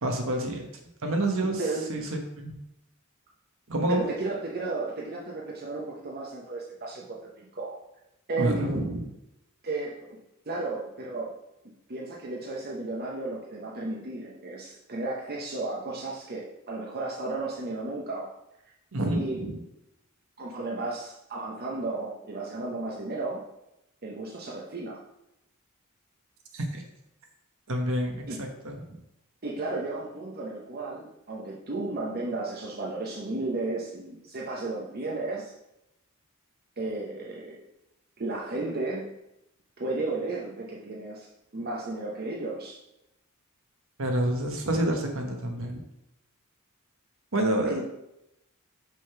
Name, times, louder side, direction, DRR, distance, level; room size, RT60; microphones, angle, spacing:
voice 1, 0.0-0.7 1.0-1.6 1.9-2.6 3.7-4.1 8.4-9.0 18.9-19.6 26.5-26.8 27.7-29.0 44.0-45.8 47.3-47.8, right 1 dB, 65° right, 3 dB, 1.2 m, -28 dB
voice 2, 3.9-7.8 8.3-8.8 9.6-10.2 10.5-11.3 11.9-18.3 19.1-19.4 20.4-23.4 24.0-25.0 28.3-28.4 29.4-35.5 36.8-37.6 38.2-39.1 39.8-42.8 47.7-47.8, right 2 dB, 45° right, -3 dB, 0.9 m, -34 dB
6.0 x 3.7 x 5.8 m, 0.86 s
head